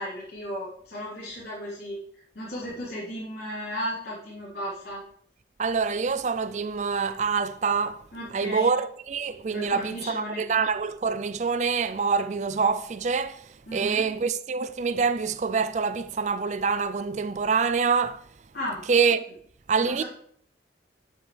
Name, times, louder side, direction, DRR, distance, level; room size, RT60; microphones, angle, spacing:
voice 1, 0.0-5.0 8.1-8.7 9.5-10.4 13.7-14.0 18.5-18.8 19.8-20.0, equal, 65° left, 3.3 m, -35 dB
voice 2, 5.6-8.0 8.3-18.2 18.9-19.2 19.7-20.0, right 5 dB, 40° right, 0.4 m, -26 dB
9.9 x 8.0 x 3.3 m
head